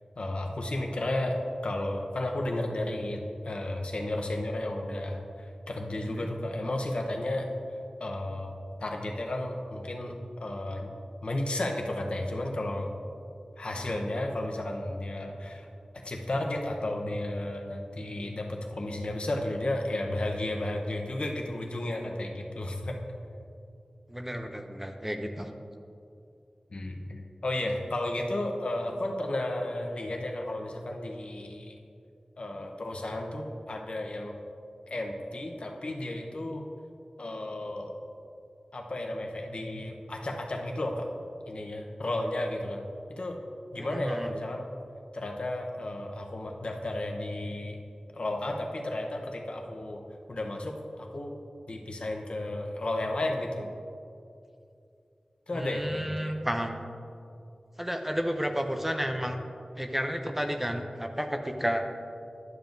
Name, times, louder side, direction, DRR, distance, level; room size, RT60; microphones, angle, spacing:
voice 1, 0.2-1.4 1.6-7.5 8.0-10.9 11.2-12.9 13.6-15.7 16.0-23.0 26.7-31.7 32.4-34.3 34.9-36.6 37.2-37.9 38.7-41.1 41.5-43.4 43.7-44.7 45.1-47.8 48.1-50.0 50.3-51.3 51.7-53.7 55.5-56.4, left 1 dB, 60° left, 2 dB, 0.8 m, -33 dB
voice 2, 24.1-25.5 43.8-44.3 55.5-56.8 57.8-59.4 59.8-61.8, equal, 10° right, 5 dB, 0.5 m, -32 dB
11.0 x 7.1 x 2.6 m, 2.5 s
wide cardioid pair, 80°, 2 cm